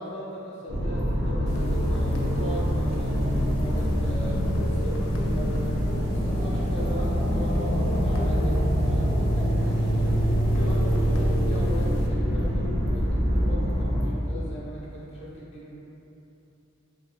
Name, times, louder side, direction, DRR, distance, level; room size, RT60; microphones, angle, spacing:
voice 1, 0.0-15.7, equal, 30° left, -8 dB, 0.6 m, -39 dB
sound 1, 0.7-14.1, equal, 75° right, 0.5 m, -24 dB
sound 2, 1.5-12.1, equal, 90° left, 0.4 m, -41 dB
2.9 x 2.2 x 2.7 m, 2.9 s
head